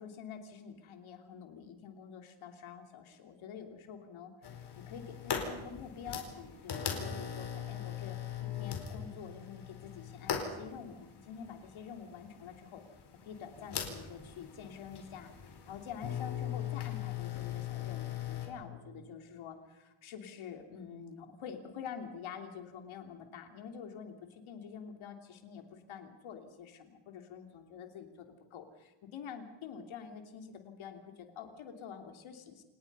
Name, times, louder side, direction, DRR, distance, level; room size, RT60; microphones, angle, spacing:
voice 1, 0.0-12.8 13.2-32.6, left 7 dB, 80° left, 5 dB, 3.1 m, -47 dB
sound 1, 4.4-18.5, left 8 dB, 55° left, 4.4 m, -39 dB
28.0 x 19.5 x 5.6 m, 1.0 s
cardioid pair, 120°, 47 cm